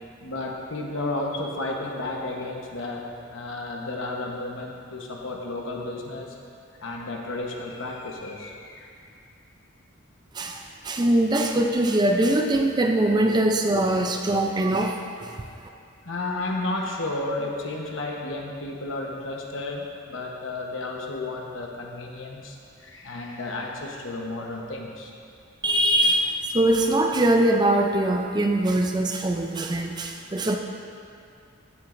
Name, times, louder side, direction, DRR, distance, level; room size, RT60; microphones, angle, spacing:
voice 1, 0.2-6.3 6.8-8.9 16.0-25.1, left 2 dB, 65° left, 0 dB, 1.1 m, -32 dB
voice 2, 10.3-15.4 25.6-30.6, right 1 dB, 20° right, 3 dB, 0.4 m, -22 dB
14.5 x 7.4 x 2.6 m, 2.4 s
head